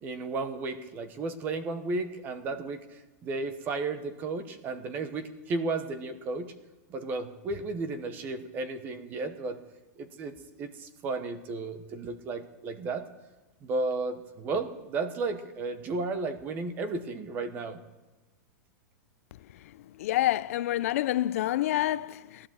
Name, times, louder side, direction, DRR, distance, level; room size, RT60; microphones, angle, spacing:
voice 1, 0.0-6.5 6.9-9.6 10.0-10.3 10.6-13.1 13.6-17.8, right 3 dB, 20° right, 0.9 m, -33 dB
voice 2, 20.0-22.5, left 14 dB, 50° left, 0.5 m, -27 dB
17.0 x 11.5 x 7.4 m
supercardioid pair, 175°, 10 cm